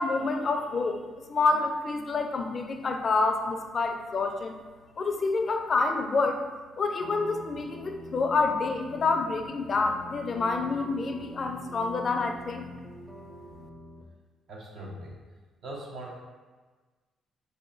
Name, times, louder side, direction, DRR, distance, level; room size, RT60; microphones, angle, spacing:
voice 1, 0.0-4.5 5.0-6.4 6.8-12.7, left 3 dB, 45° left, 4 dB, 0.4 m, -28 dB
sound 1, 7.0-14.0, left 1 dB, 25° right, 0.6 m, -45 dB
voice 2, 14.5-15.2 15.6-16.1, right 1 dB, 65° right, -2 dB, 0.6 m, -40 dB
4.0 x 2.7 x 2.5 m, 1.3 s
cardioid pair, 90°, 0 cm